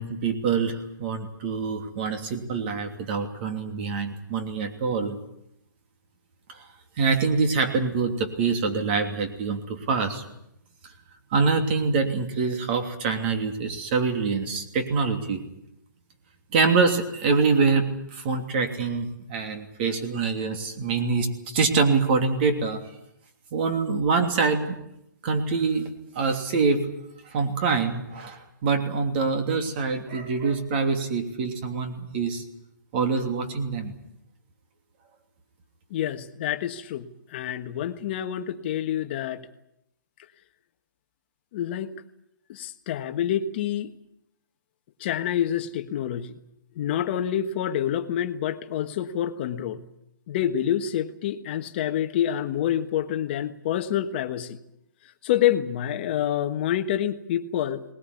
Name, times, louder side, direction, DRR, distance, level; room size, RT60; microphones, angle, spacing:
voice 1, 0.0-5.2 6.5-6.6 7.0-10.2 11.3-15.4 16.5-22.8 23.5-24.6 25.2-25.9 26.1-26.9 27.3-32.4 32.9-33.9, right 4 dB, 30° right, 6 dB, 3.0 m, -25 dB
voice 2, 35.9-39.5 41.5-41.9 42.5-43.9 45.0-46.3 46.7-49.8 50.3-54.6 55.2-57.8, left 10 dB, 30° left, 9 dB, 1.4 m, -27 dB
20.0 x 19.5 x 9.8 m, 0.80 s
hypercardioid pair, 160°, 11 cm